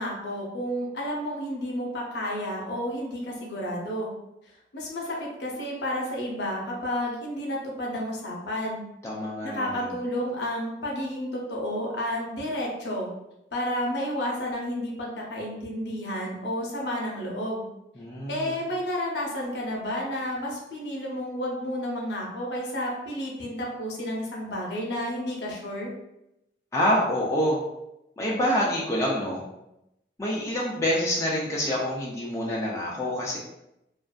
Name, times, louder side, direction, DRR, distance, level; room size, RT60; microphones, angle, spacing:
voice 1, 0.0-4.1 4.7-8.8 9.4-13.1 13.5-17.6 18.3-25.9, equal, 70° left, -2 dB, 0.6 m, -31 dB
voice 2, 9.0-9.9 18.0-18.6 26.7-27.6 28.2-29.4 30.2-33.4, equal, 15° left, -5 dB, 0.4 m, -26 dB
2.5 x 2.4 x 2.2 m, 0.87 s
head